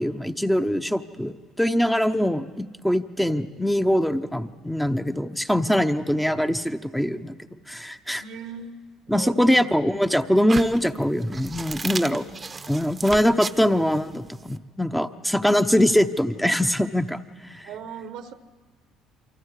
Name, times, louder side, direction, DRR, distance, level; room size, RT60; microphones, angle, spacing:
voice 1, 0.0-7.3 7.7-8.2 9.1-12.2 12.7-17.7, equal, 5° left, 9 dB, 0.9 m, -23 dB
voice 2, 8.2-8.8 9.1-9.7 17.6-18.3, right 7 dB, 80° right, 10 dB, 1.1 m, -38 dB
sound 1, 10.5-14.6, right 4 dB, 25° right, 0.9 m, -34 dB
28.5 x 23.5 x 4.9 m, 1.5 s
supercardioid pair, 90°, 0 cm